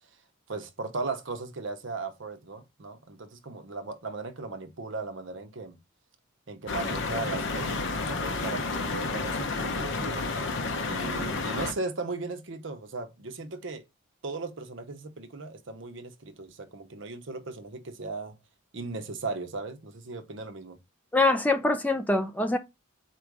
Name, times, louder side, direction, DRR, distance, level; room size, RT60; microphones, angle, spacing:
voice 1, 0.5-5.8 6.5-10.3 10.9-13.8 14.2-18.3 18.7-20.8, right 3 dB, 60° right, 0.8 m, -37 dB
sound 1, 6.7-11.7, left 3 dB, 60° left, 0.7 m, -31 dB
voice 2, 21.1-22.6, left 2 dB, 5° left, 0.3 m, -24 dB
4.4 x 2.5 x 4.7 m
head